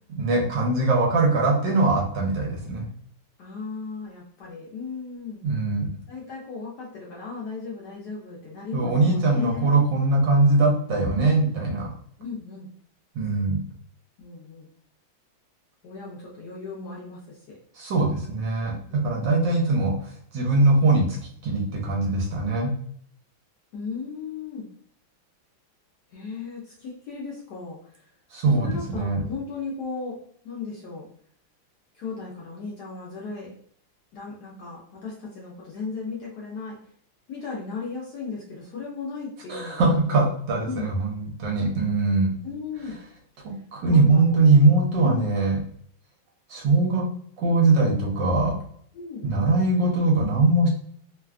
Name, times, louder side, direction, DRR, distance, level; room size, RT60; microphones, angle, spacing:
voice 1, 0.2-2.9 5.4-5.9 8.7-11.9 13.1-13.6 17.8-19.9 20.3-21.2 21.4-22.7 28.3-29.2 39.5-42.3 43.4-45.6 46.5-47.0 47.4-48.6 49.2-50.7, right 2 dB, 70° right, -1 dB, 1.3 m, -21 dB
voice 2, 3.4-5.4 6.1-9.8 12.2-12.7 14.2-14.7 15.8-17.6 18.9-19.4 23.7-24.7 26.1-28.0 28.4-30.2 30.4-31.1 31.9-33.5 34.1-36.8 37.3-40.3 40.6-40.9 42.4-43.0 43.9-44.4 45.0-45.3 48.9-49.3, left 5 dB, 70° left, -4 dB, 1.0 m, -36 dB
3.3 x 2.2 x 2.4 m, 0.63 s
omnidirectional pair, 2.2 m